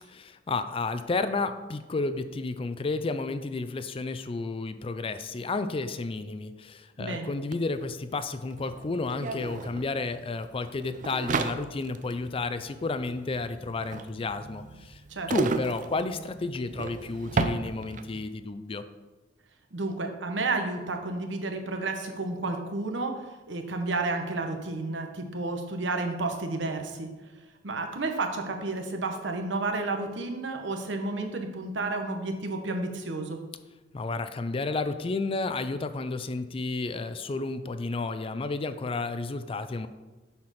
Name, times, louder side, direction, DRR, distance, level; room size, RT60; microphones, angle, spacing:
voice 1, 0.1-15.0 15.3-18.8 33.9-39.9, left 3 dB, 30° left, 11 dB, 0.4 m, -32 dB
voice 2, 7.0-7.3 15.1-15.3 19.7-23.1 23.5-27.1 27.6-33.4, right 3 dB, 85° right, 5 dB, 1.0 m, -31 dB
sound 1, 7.5-7.6 7.8-18.3, right 4 dB, 45° right, 0.4 m, -34 dB
7.5 x 4.4 x 5.7 m, 1.2 s
head